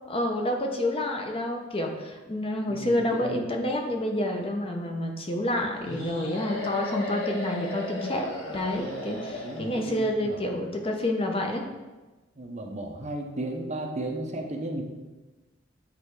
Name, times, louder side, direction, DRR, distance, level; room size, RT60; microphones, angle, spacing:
voice 1, 0.1-8.3 8.5-11.6, left 1 dB, 30° left, 2 dB, 0.8 m, -28 dB
voice 2, 2.7-3.5 9.3-10.4 12.4-14.8, right 1 dB, 40° right, 2 dB, 0.8 m, -35 dB
sound 1, 5.8-10.0, left 1 dB, 90° left, 1.5 m, -35 dB
8.4 x 3.2 x 4.7 m, 1.2 s
head